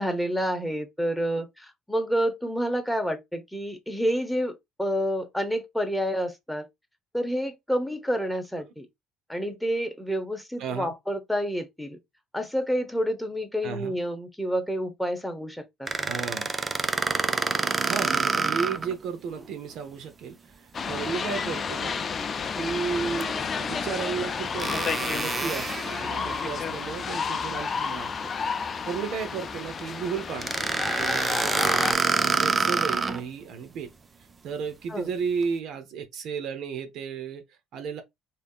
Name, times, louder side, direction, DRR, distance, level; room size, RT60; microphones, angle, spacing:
voice 1, 0.0-6.7 7.1-8.9 9.3-12.0 12.3-16.1 34.9-35.1, equal, 5° left, 1.0 m, -29 dB
voice 2, 10.6-10.9 13.6-14.0 16.0-16.5 17.8-22.2 22.5-28.1 28.8-31.9 32.3-33.9 34.4-38.0, right 6 dB, 65° right, 0.7 m, -34 dB
sound 1, 15.9-18.9 19.4-19.5 23.2-23.3 24.6-26.5 30.4-33.2, right 4 dB, 30° right, 0.4 m, -27 dB
sound 2, 20.7-31.9, left 5 dB, 40° left, 0.4 m, -31 dB
3.4 x 2.7 x 2.4 m
hypercardioid pair, 65°, 0 cm